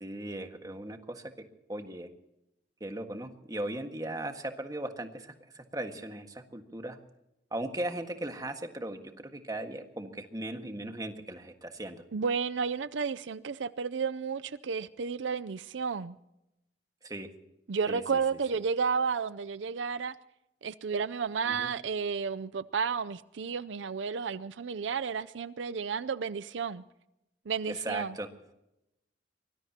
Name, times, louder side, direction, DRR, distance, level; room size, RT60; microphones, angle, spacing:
voice 1, 0.0-2.1 2.8-7.0 7.5-12.0 17.0-17.3 17.9-18.0 21.4-21.7 27.7-28.3, right 1 dB, 20° right, 1.6 m, -38 dB
voice 2, 12.1-16.2 17.7-20.1 20.6-26.8 27.5-28.1, right 5 dB, 85° right, 0.5 m, -32 dB
24.5 x 20.0 x 2.9 m
head